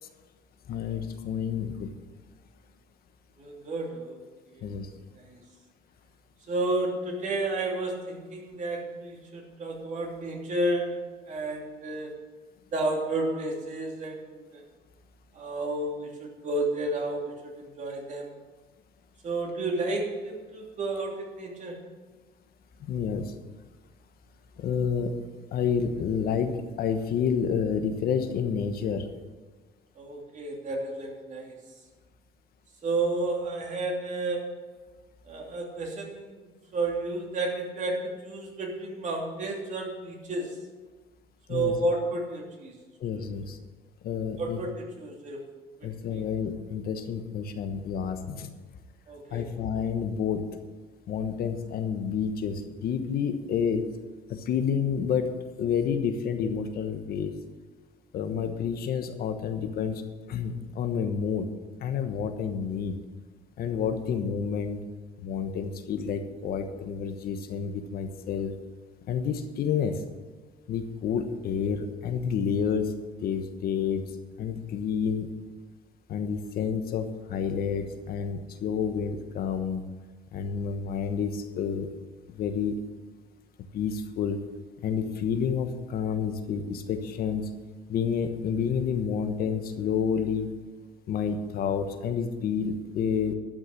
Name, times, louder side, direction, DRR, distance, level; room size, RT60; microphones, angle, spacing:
voice 1, 0.7-1.9 4.6-4.9 22.9-23.3 24.6-25.2 25.5-29.1 41.5-42.0 43.0-43.6 44.0-44.6 45.8-48.5 49.3-50.4 51.1-53.8 54.3-57.3 58.1-60.0 60.3-61.5 61.8-63.0 63.6-64.8 65.2-68.5 69.1-70.0 70.7-72.9 73.2-75.3 76.1-79.8 80.3-81.9 82.3-82.8 83.7-84.4 84.8-87.5 87.9-90.5 91.1-93.3, left 7 dB, 65° left, 7 dB, 1.2 m, -29 dB
voice 2, 3.4-4.2 4.5-4.7 5.1-5.4 6.5-12.1 12.7-14.6 15.3-18.3 19.2-21.8 30.0-31.5 32.8-34.5 35.2-40.6 41.5-42.8 43.1-43.2 44.4-45.4 45.8-45.9 46.1-46.2 49.1-49.5, right 2 dB, 45° right, 0 dB, 3.0 m, -32 dB
12.5 x 6.4 x 7.8 m, 1.3 s
cardioid pair, 110°, 17 cm